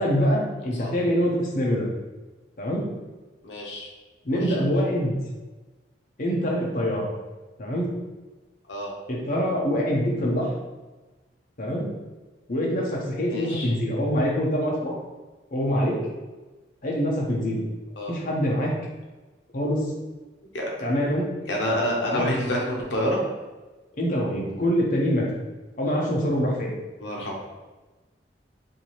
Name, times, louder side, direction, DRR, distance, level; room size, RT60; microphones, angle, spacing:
voice 1, 0.0-1.9 2.6-2.8 4.2-5.1 6.2-7.1 7.6-7.9 9.1-10.5 11.6-11.9 12.5-14.9 15.5-16.0 16.8-17.6 18.1-18.7 19.5-19.9 20.8-21.3 22.1-22.2 23.9-25.3 25.8-26.7, equal, 50° left, -3 dB, 0.8 m, -24 dB
voice 2, 3.4-3.9 4.3-4.7 8.7-8.9 13.3-13.7 18.0-18.2 20.5-20.7 21.5-23.2 27.0-27.4, left 1 dB, 85° left, -2 dB, 0.7 m, -28 dB
4.6 x 2.7 x 3.0 m, 1.2 s
head